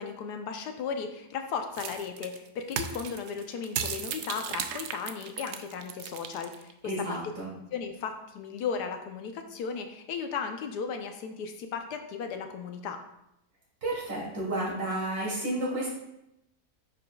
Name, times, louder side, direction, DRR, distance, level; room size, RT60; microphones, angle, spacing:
voice 1, 0.0-7.2 7.7-13.0, left 6 dB, 85° left, 6 dB, 1.3 m, -36 dB
sound 1, 1.8-6.7, right 7 dB, 80° right, 0.6 m, -35 dB
voice 2, 6.8-7.5 13.8-15.9, right 1 dB, 65° right, -6 dB, 3.3 m, -31 dB
9.5 x 5.0 x 2.3 m, 0.84 s
omnidirectional pair, 1.7 m